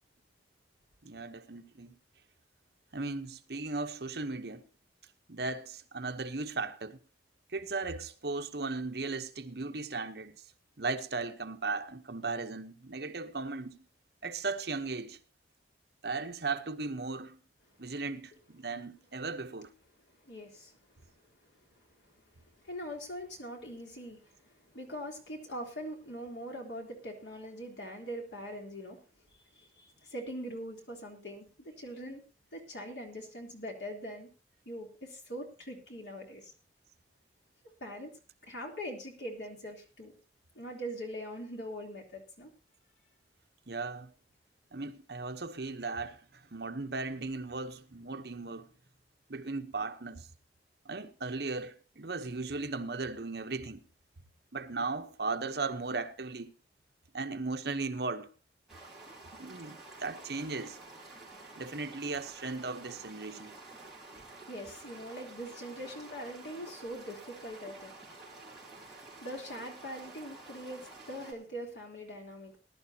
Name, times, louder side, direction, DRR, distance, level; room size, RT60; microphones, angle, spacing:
voice 1, 1.0-1.9 2.9-4.6 5.3-7.0 7.5-10.4 10.8-13.8 14.2-15.2 16.0-17.4 17.8-19.7 43.7-44.1 44.7-48.7 49.3-50.3 50.8-53.8 54.5-56.5 57.1-58.3 59.3-60.8 61.5-63.6, right 3 dB, 65° right, 1.0 m, -37 dB
voice 2, 20.2-20.8 22.0-29.0 29.5-32.2 32.5-34.3 34.6-36.5 37.8-38.1 38.4-40.1 40.5-42.5 64.1-68.0 68.9-72.6, equal, 80° left, 3.4 m, -42 dB
sound 1, 58.7-71.3, right 3 dB, 5° right, 4.8 m, -50 dB
19.5 x 11.5 x 2.9 m
head